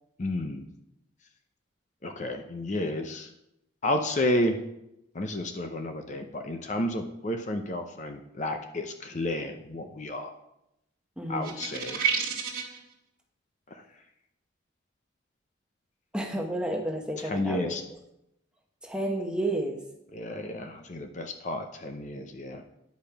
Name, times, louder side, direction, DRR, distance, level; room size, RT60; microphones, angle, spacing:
voice 1, 0.2-0.6 2.0-3.3 3.8-4.6 5.1-10.3 11.3-12.1 13.7-13.8 17.2-17.8 20.1-22.6, left 1 dB, 40° left, 6 dB, 0.6 m, -31 dB
voice 2, 11.2-11.5 16.1-17.7 18.8-19.8, right 1 dB, 5° right, 2 dB, 1.0 m, -31 dB
sound 1, 11.4-12.8, right 6 dB, 50° right, 1.6 m, -29 dB
10.0 x 5.2 x 5.7 m, 0.86 s
head